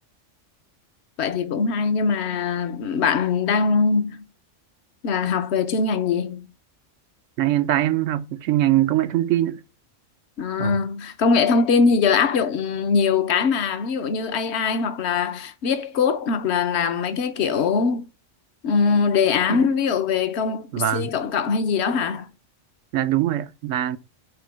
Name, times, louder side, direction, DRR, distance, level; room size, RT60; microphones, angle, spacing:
voice 1, 1.2-4.3 5.0-6.5 10.4-18.1 18.6-22.3, left 5 dB, 60° left, 1.0 m, -22 dB
voice 2, 7.4-9.6 10.6-10.8 19.5-19.6 20.7-21.1 22.9-24.0, right 13 dB, 75° right, 1.0 m, -22 dB
5.2 x 4.2 x 5.8 m
omnidirectional pair, 1.3 m